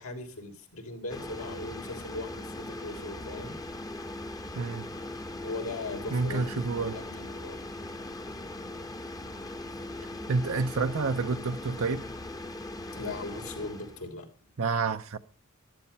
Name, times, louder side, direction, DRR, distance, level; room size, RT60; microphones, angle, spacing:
voice 1, 0.0-3.5 5.4-7.6 12.8-14.3, left 2 dB, 80° left, 3.5 m, -39 dB
sound 1, 1.1-14.1, left 2 dB, 15° left, 0.9 m, -40 dB
voice 2, 4.5-4.9 6.1-7.0 10.3-12.1 14.6-15.2, right 4 dB, 75° right, 0.7 m, -29 dB
13.0 x 12.0 x 5.5 m
head